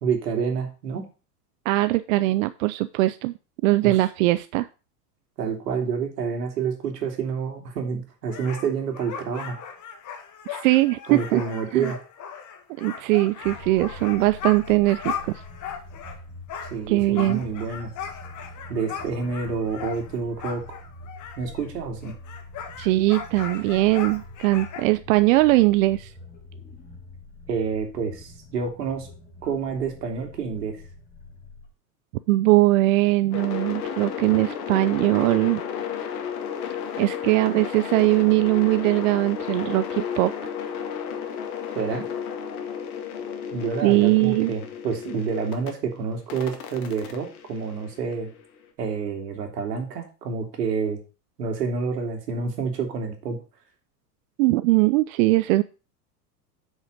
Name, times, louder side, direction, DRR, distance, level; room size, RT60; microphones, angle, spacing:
voice 1, 0.0-1.0 3.7-4.0 5.4-9.6 11.1-12.0 16.7-17.9 18.7-20.8 21.4-22.1 27.5-29.1 29.4-30.8 41.7-42.1 43.5-48.3 48.8-51.0 51.4-53.4, right 5 dB, 70° right, 4 dB, 2.7 m, -28 dB
voice 2, 1.7-3.3 3.6-4.7 10.5-11.4 11.7-11.9 12.8-15.3 16.9-17.4 22.8-26.1 32.3-35.6 37.0-40.3 43.8-44.5 54.4-55.6, right 19 dB, 55° right, 13 dB, 0.6 m, -21 dB
sound 1, 8.3-16.2 16.5-21.7 22.0-24.8, left 7 dB, 35° left, 1.8 m, -37 dB
sound 2, 13.4-31.7, left 2 dB, 20° left, 4.2 m, -44 dB
sound 3, 33.3-45.7 46.3-48.4, left 8 dB, 60° left, 2.1 m, -33 dB
7.7 x 6.4 x 5.3 m, 0.33 s
hypercardioid pair, 90°, 49 cm